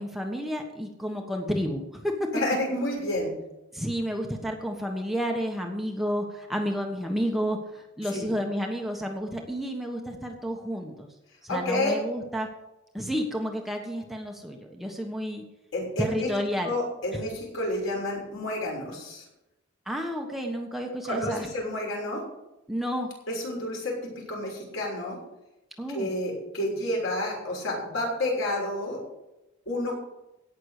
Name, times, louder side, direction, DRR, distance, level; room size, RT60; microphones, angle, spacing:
voice 1, 0.0-2.3 3.7-11.1 11.5-12.5 12.9-15.4 16.0-16.7 17.1-17.2 19.9-21.5 22.7-23.1 25.8-26.1, equal, ahead, 1 dB, 1.3 m, -31 dB
voice 2, 2.3-3.4 8.1-8.3 11.5-11.9 15.7-16.3 16.6-19.2 21.0-22.2 23.3-25.2 25.9-29.0 29.7-29.9, left 1 dB, 70° left, -2 dB, 6.2 m, -30 dB
17.5 x 6.6 x 6.6 m, 0.93 s
head